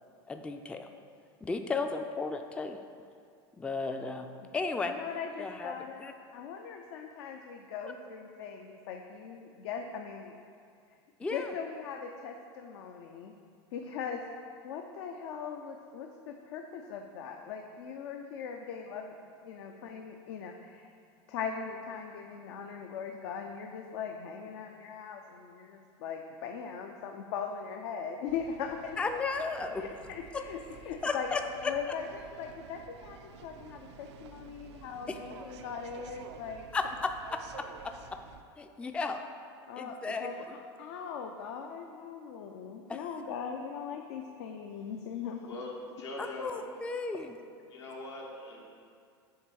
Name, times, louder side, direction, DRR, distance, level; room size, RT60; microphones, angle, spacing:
voice 1, 0.3-0.9 1.4-2.8 3.6-4.3 4.5-4.9 5.4-5.7 6.0-6.1 7.8-7.9 11.2-11.5 29.0-29.8 30.3-30.4 31.0-31.7 35.1-35.2 36.7-37.4 37.8-37.9 38.6-39.2 39.8-40.5 42.9-43.0 46.4-47.4, left 4 dB, 10° left, 6 dB, 0.3 m, -34 dB
voice 2, 4.8-10.3 11.3-13.3 13.7-14.2 14.6-19.1 19.4-20.9 21.3-29.2 29.8-31.3 31.6-36.7 39.7-45.4, left 6 dB, 75° left, 3 dB, 0.5 m, -40 dB
sound 1, 28.3-38.4, right 7 dB, 80° right, 0.4 m, -51 dB
voice 3, 45.5-46.6 47.7-48.7, left 2 dB, 90° left, -3 dB, 1.3 m, -41 dB
7.1 x 3.4 x 4.7 m, 2.3 s
hypercardioid pair, 95°, 14 cm